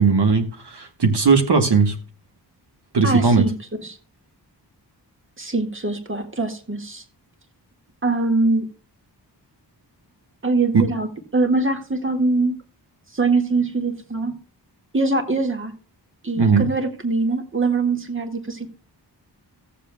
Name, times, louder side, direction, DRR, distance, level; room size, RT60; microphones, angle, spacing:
voice 1, 0.0-1.9 2.9-3.4 10.7-10.8 16.4-16.7, right 5 dB, 65° right, 4 dB, 1.6 m, -17 dB
voice 2, 3.0-4.0 5.4-7.0 8.0-8.7 10.4-12.5 13.1-14.4 14.9-15.7 16.2-18.7, right 3 dB, 30° right, 5 dB, 1.8 m, -23 dB
17.0 x 7.3 x 2.3 m, 0.38 s
wide cardioid pair, 85°, 43 cm